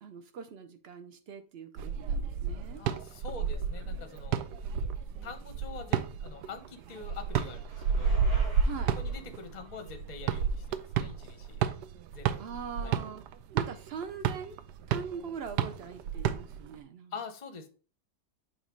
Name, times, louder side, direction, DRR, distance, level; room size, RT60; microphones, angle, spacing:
voice 1, 0.0-2.8 8.6-9.0 12.4-13.2 13.5-14.6 14.9-17.1, right 6 dB, 70° right, 8 dB, 0.6 m, -42 dB
sound 1, 1.8-16.7, right 7 dB, 90° right, 1.2 m, -31 dB
voice 2, 2.8-4.5 5.2-8.2 9.0-11.6 12.1-12.4 12.8-13.0 17.1-17.7, left 5 dB, 40° left, 7 dB, 0.6 m, -45 dB
Bicycle, 5.7-11.7, right 1 dB, 50° right, 3.7 m, -51 dB
7.1 x 3.0 x 5.0 m, 0.37 s
omnidirectional pair, 1.7 m